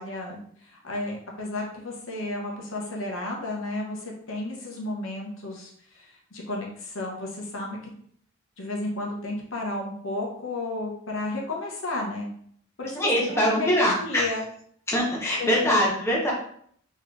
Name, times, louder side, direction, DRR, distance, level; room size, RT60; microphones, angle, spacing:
voice 1, 0.0-7.8 8.6-12.3 12.8-14.5 15.4-15.9, left 2 dB, 70° left, -1 dB, 1.0 m, -32 dB
voice 2, 13.0-14.3 14.9-16.3, equal, 10° left, -3 dB, 0.8 m, -23 dB
4.1 x 3.1 x 3.2 m, 0.62 s
head